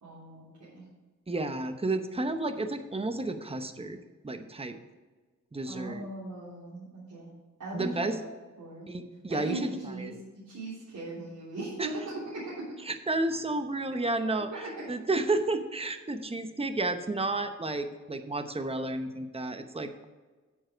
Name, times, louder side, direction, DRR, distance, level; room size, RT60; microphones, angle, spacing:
voice 1, 0.0-0.8 5.7-7.3 7.6-8.3 8.6-8.8 9.3-12.7 14.5-14.7, right 2 dB, 85° right, -10 dB, 3.6 m, -39 dB
voice 2, 1.3-4.0 4.2-4.8 5.5-6.0 7.7-8.2 8.9-10.2 11.8-11.9 12.8-20.1, right 2 dB, 20° right, 8 dB, 0.9 m, -31 dB
9.0 x 7.4 x 5.1 m, 1.3 s
wide cardioid pair, 105°, 30 cm